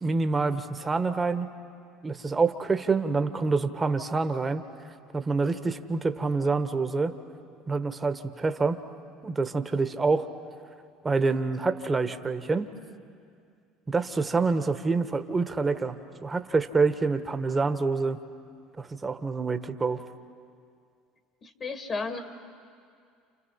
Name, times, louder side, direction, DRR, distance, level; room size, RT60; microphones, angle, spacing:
voice 1, 0.0-1.5 2.0-4.6 5.1-7.1 7.7-8.8 9.2-10.3 11.0-12.7 13.9-18.2 18.8-20.0, right 4 dB, 25° right, 9 dB, 1.4 m, -27 dB
voice 2, 21.4-22.2, left 4 dB, 40° left, 6 dB, 2.1 m, -33 dB
30.0 x 29.0 x 5.8 m, 2.3 s
hypercardioid pair, 75°, 0 cm